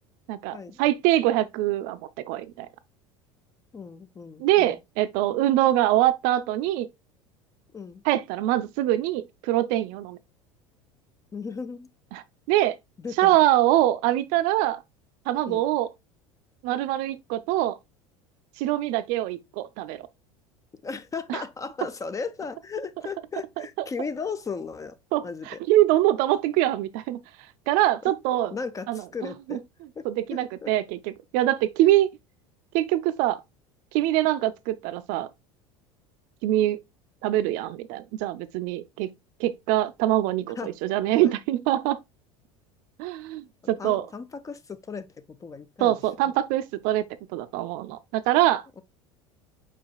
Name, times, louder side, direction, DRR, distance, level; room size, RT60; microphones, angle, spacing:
voice 1, 0.3-2.0 2.3-2.7 4.4-6.9 8.0-10.2 12.1-12.2 12.5-12.8 13.2-14.8 15.3-15.9 16.6-17.8 18.6-20.0 21.3-21.4 23.6-23.7 25.1-27.2 27.7-28.6 28.9-29.6 30.0-32.1 32.7-33.4 33.9-35.3 36.4-36.8 37.2-39.1 39.4-42.0 43.0-44.1 45.8-47.0 47.3-48.8, right 14 dB, 55° right, 0.5 m, -24 dB
voice 2, 3.7-4.8 7.7-8.0 11.3-11.9 13.0-13.4 15.5-15.6 20.8-25.0 25.2-25.6 28.5-29.6 30.0-30.7 40.6-40.7 41.2-41.3 43.8-45.1 45.4-45.9, left 5 dB, 20° left, 0.5 m, -36 dB
4.9 x 4.6 x 2.3 m
figure-of-eight pair, 70°, 17 cm